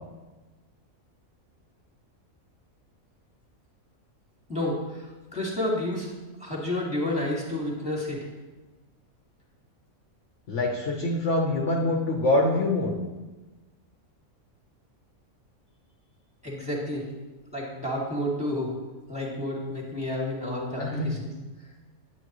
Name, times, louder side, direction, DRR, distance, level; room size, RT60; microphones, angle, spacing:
voice 1, 4.5-5.0 5.3-6.1 6.4-8.3 16.4-17.0 17.5-18.7 19.1-21.3, left 1 dB, 5° right, -4 dB, 2.2 m, -30 dB
voice 2, 10.5-13.0 20.8-21.1, left 2 dB, 60° left, 0 dB, 1.2 m, -25 dB
10.0 x 9.2 x 3.1 m, 1.2 s
omnidirectional pair, 1.5 m